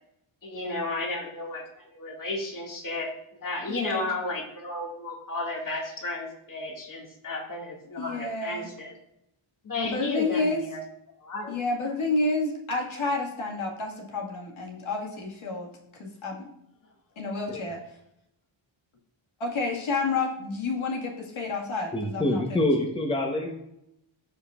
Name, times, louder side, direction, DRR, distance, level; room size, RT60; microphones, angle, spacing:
voice 1, 0.4-3.1 3.4-9.0 9.6-10.8 11.2-11.6, left 2 dB, 40° left, -1 dB, 2.2 m, -33 dB
voice 2, 3.7-4.1 8.0-8.7 9.8-10.6 11.5-15.7 16.0-16.5 17.2-17.8 19.4-22.7, left 3 dB, 70° left, -2 dB, 2.0 m, -30 dB
voice 3, 21.9-23.5, left 1 dB, 10° left, 2 dB, 1.0 m, -26 dB
15.5 x 5.2 x 2.5 m, 0.81 s
wide cardioid pair, 115°, 50 cm